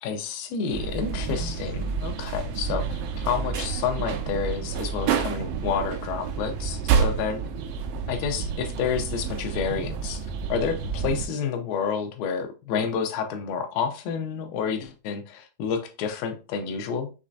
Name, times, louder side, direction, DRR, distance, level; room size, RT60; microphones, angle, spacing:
voice 1, 0.0-7.4 8.1-17.1, left 6 dB, 85° left, 2.5 m, -29 dB
sound 1, 0.7-11.3, right 6 dB, 80° right, 2.2 m, -29 dB
6.3 x 3.2 x 2.5 m
omnidirectional pair, 4.1 m